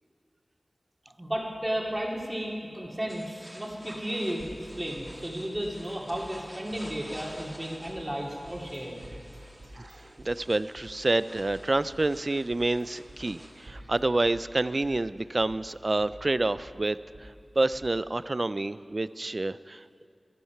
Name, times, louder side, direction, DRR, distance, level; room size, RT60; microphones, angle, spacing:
voice 1, 1.2-9.0, equal, 20° right, -2 dB, 2.5 m, -33 dB
sound 1, 3.1-13.7, equal, 5° right, 2.3 m, -50 dB
sound 2, 4.4-5.9 6.1-6.2 6.7-8.0 8.4-8.8 9.0-10.9 11.3-12.8 13.1-13.2 13.7-15.0 15.4-17.2 17.7-17.8, right 1 dB, 80° right, 3.5 m, -50 dB
voice 2, 9.8-17.3 17.6-20.1, right 2 dB, 50° right, 16 dB, 0.3 m, -28 dB
13.0 x 11.0 x 5.8 m, 2.6 s
cardioid pair, 40°, 0 cm